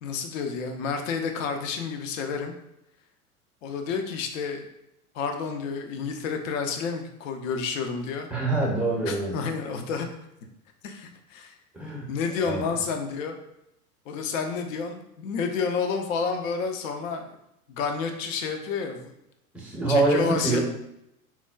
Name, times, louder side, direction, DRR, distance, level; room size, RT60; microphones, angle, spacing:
voice 1, 0.0-2.5 3.6-4.7 5.1-8.3 9.1-10.1 10.8-11.6 12.1-13.4 14.1-17.3 17.7-19.1 19.9-20.6, left 5 dB, 60° left, 5 dB, 0.6 m, -30 dB
voice 2, 8.3-9.3 11.7-12.1 12.4-12.6 19.5-20.6, right 2 dB, 5° right, -3 dB, 0.6 m, -25 dB
4.3 x 2.1 x 2.3 m, 0.82 s
figure-of-eight pair, 85°, 45 cm